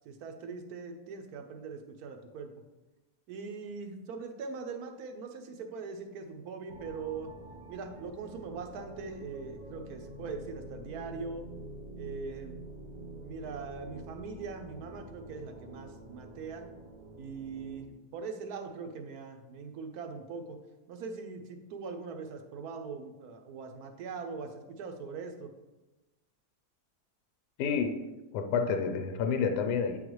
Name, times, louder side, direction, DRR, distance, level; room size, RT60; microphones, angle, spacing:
voice 1, 0.0-2.5 3.3-7.3 7.7-11.5 12.0-12.6 13.1-16.7 17.2-20.6 20.9-25.5, right 4 dB, 70° right, 6 dB, 1.1 m, -41 dB
sound 1, 6.7-17.8, right 2 dB, 40° right, 0.8 m, -47 dB
voice 2, 27.6-27.9 28.3-30.0, left 6 dB, 80° left, 6 dB, 1.1 m, -29 dB
8.6 x 3.9 x 3.0 m, 1.1 s
omnidirectional pair, 1.8 m